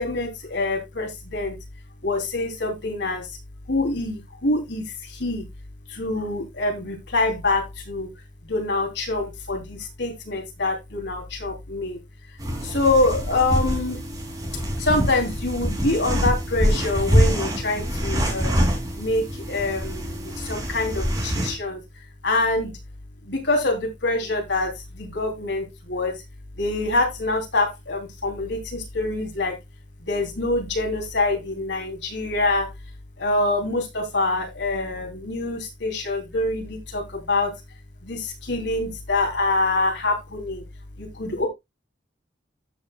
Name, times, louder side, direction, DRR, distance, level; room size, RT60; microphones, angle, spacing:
voice 1, 0.0-1.6 2.0-3.4 3.7-5.4 5.9-8.1 8.5-12.0 12.6-14.0 14.8-18.6 18.9-21.8 22.2-22.7 23.2-26.1 26.6-29.6 30.1-32.7 33.2-37.5 38.0-40.6 41.0-41.5, left 2 dB, 70° left, 2 dB, 3.3 m, -25 dB
sound 1, 12.4-21.5, equal, 20° right, 2.8 m, -25 dB
13.5 x 6.5 x 2.3 m, 0.20 s
head